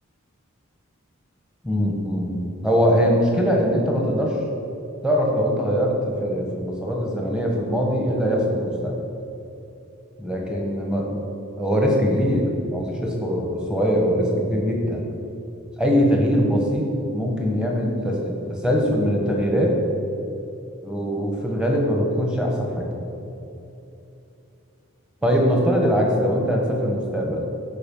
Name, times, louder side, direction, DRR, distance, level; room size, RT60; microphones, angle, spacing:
voice 1, 1.6-4.4 5.0-9.0 10.2-11.2 11.6-15.0 15.8-16.9 17.1-19.8 20.8-22.9 25.2-27.5, equal, 5° right, -1 dB, 1.2 m, -22 dB
12.0 x 5.0 x 5.5 m, 2.8 s
head